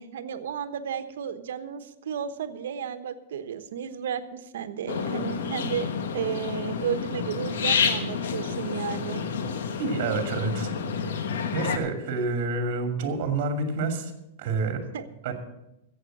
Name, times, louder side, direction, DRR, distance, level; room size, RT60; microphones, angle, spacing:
voice 1, 0.0-9.2 14.9-15.0, right 8 dB, 80° right, 11 dB, 1.1 m, -33 dB
sound 1, 4.9-11.8, left 6 dB, 85° left, 1.5 m, -29 dB
voice 2, 9.8-10.7 11.5-14.1 14.4-14.9 15.2-15.3, right 3 dB, 50° right, 6 dB, 2.5 m, -28 dB
14.0 x 8.3 x 7.8 m, 0.89 s
supercardioid pair, 155°, 0 cm